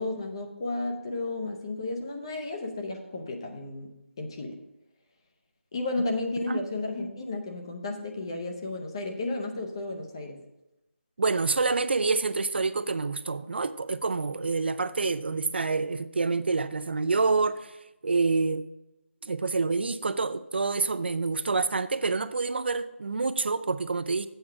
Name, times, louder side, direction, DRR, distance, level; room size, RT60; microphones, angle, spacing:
voice 1, 0.0-3.9 4.2-4.6 5.7-10.4, left 2 dB, 20° left, 0.7 m, -33 dB
voice 2, 11.2-17.8 18.0-18.7 19.2-24.3, right 4 dB, 55° right, 0.4 m, -27 dB
7.9 x 4.7 x 7.3 m
figure-of-eight pair, 175°, 7 cm